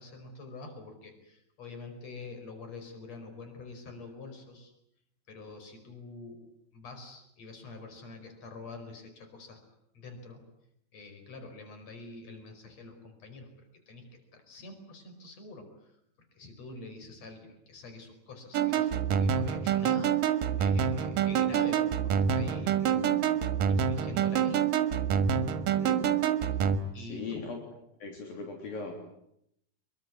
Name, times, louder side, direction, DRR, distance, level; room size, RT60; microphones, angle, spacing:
voice 1, 0.0-4.7 5.3-6.4 6.7-9.6 9.9-10.4 10.9-13.5 13.9-14.1 14.3-16.0 16.3-23.0 23.7-24.6 26.5-27.4, left 3 dB, 45° left, 7 dB, 6.0 m, -46 dB
sound 1, 18.5-26.8, right 8 dB, 65° right, 3.0 m, -27 dB
voice 2, 22.9-23.3 25.8-26.2 27.0-27.6 28.0-28.9, left 4 dB, 65° left, 2 dB, 5.1 m, -39 dB
26.5 x 23.0 x 9.6 m, 0.76 s
omnidirectional pair, 4.4 m